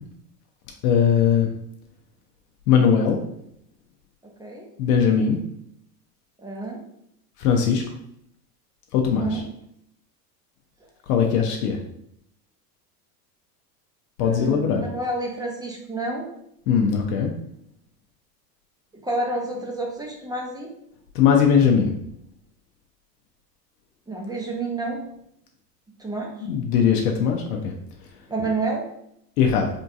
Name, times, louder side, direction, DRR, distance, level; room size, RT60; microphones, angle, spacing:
voice 1, 0.8-1.5 2.7-3.2 4.8-5.4 7.4-7.8 8.9-9.4 11.1-11.8 14.2-14.8 16.7-17.3 21.1-21.9 26.5-27.7 29.4-29.7, left 7 dB, 70° left, 2 dB, 0.7 m, -19 dB
voice 2, 4.2-4.7 6.4-6.8 9.1-9.4 14.2-16.3 18.9-20.7 24.1-25.0 26.0-26.3 28.3-28.8, right 2 dB, 10° right, -1 dB, 0.5 m, -29 dB
3.6 x 2.6 x 2.4 m, 0.73 s
hypercardioid pair, 95°, 49 cm